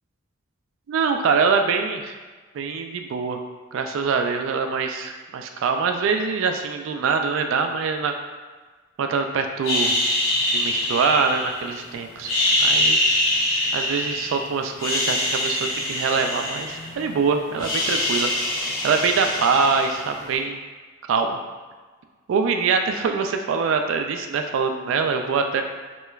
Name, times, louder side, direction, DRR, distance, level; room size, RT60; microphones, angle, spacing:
voice 1, 0.9-2.1 2.5-3.4 3.7-8.1 9.0-10.0 10.5-12.3 12.6-13.0 13.7-18.3 18.8-20.6 21.0-21.4 22.3-25.6, right 5 dB, 70° right, 5 dB, 0.3 m, -24 dB
sound 1, 9.6-11.8 12.2-14.4 14.7-17.1 17.4-20.3, left 1 dB, 80° left, 0.9 m, -24 dB
3.2 x 2.8 x 2.3 m, 1.4 s
head